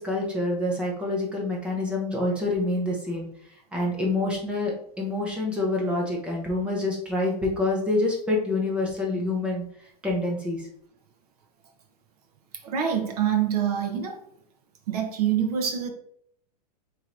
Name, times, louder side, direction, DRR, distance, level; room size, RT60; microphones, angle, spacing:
voice 1, 0.0-3.3 3.7-9.6 10.0-10.7, left 2 dB, 5° right, -2 dB, 0.6 m, -27 dB
voice 2, 12.6-14.2 14.9-15.9, right 8 dB, 65° right, 4 dB, 0.9 m, -25 dB
4.7 x 3.1 x 2.5 m, 0.67 s
supercardioid pair, 165°, 21 cm